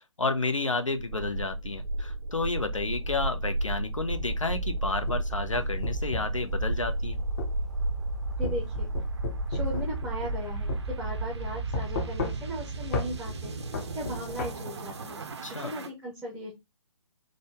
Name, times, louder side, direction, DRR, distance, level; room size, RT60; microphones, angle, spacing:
voice 1, 0.0-7.2 15.4-15.7, left 3 dB, 85° left, 0.7 m, -31 dB
sound 1, 1.0-15.9, right 2 dB, 60° right, 0.6 m, -33 dB
sound 2, 4.9-6.4 7.4-7.6 8.4-10.4 10.7-10.8 11.7-12.6 12.9-13.1 13.7-14.5, left 3 dB, 35° left, 0.8 m, -34 dB
voice 2, 8.4-8.9 9.5-13.5 13.9-15.2 15.5-16.5, equal, 5° right, 0.6 m, -37 dB
3.8 x 2.2 x 3.3 m
figure-of-eight pair, 135°, 16 cm